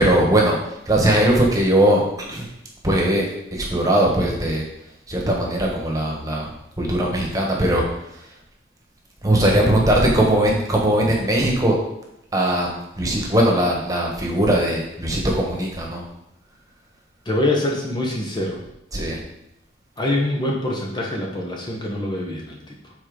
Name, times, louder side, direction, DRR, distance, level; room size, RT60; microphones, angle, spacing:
voice 1, 0.0-2.0 2.3-2.5 2.8-3.3 3.5-4.6 5.1-8.3 9.2-11.7 12.3-16.0 18.9-19.2, right 1 dB, 20° right, -1 dB, 1.4 m, -20 dB
voice 2, 17.2-18.6 20.0-22.9, left 1 dB, 25° left, -1 dB, 1.0 m, -24 dB
7.4 x 4.4 x 5.0 m, 0.83 s
head